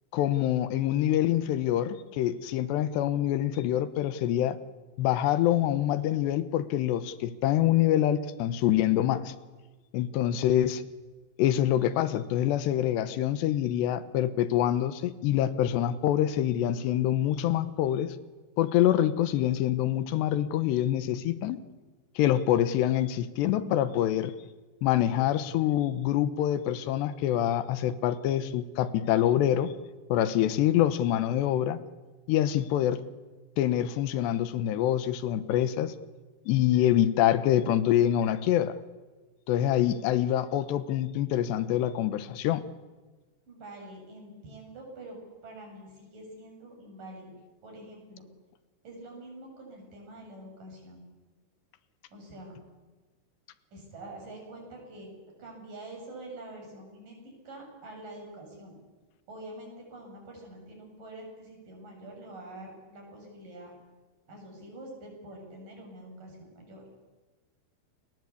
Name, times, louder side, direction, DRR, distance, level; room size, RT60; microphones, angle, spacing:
voice 1, 0.1-4.6 5.0-9.3 9.9-10.8 11.4-18.2 18.6-21.6 22.2-24.3 24.8-29.7 30.1-31.8 32.3-33.0 33.6-35.9 36.5-38.8 39.5-42.6, left 12 dB, 85° left, 13 dB, 3.3 m, -25 dB
voice 2, 43.5-47.3 47.6-48.2 48.8-51.0 52.1-52.6 53.7-55.1 55.4-58.8 59.3-63.7 64.3-66.8, right 1 dB, 50° right, 1 dB, 9.1 m, -46 dB
30.0 x 22.0 x 8.5 m, 1.3 s
omnidirectional pair, 4.8 m